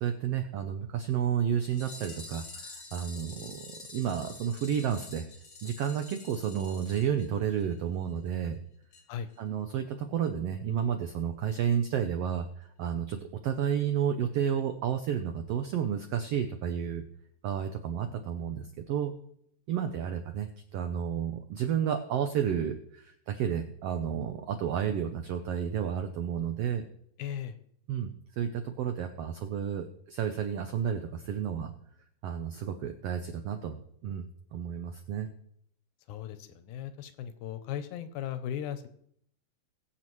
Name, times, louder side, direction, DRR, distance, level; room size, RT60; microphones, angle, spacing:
voice 1, 0.0-5.3 5.6-8.6 9.4-12.5 12.8-17.0 17.4-19.1 19.7-26.8 27.9-31.7 32.2-33.8 34.0-35.3, right 8 dB, 85° right, 7 dB, 1.3 m, -31 dB
sound 1, 1.6-7.8 8.1-8.2 8.4-8.5 8.9-9.0 9.3-9.4, left 3 dB, 40° left, 1.4 m, -48 dB
voice 2, 27.2-27.6 36.1-38.9, left 9 dB, 75° left, 10 dB, 2.1 m, -37 dB
21.5 x 7.5 x 3.1 m, 0.69 s
omnidirectional pair, 3.7 m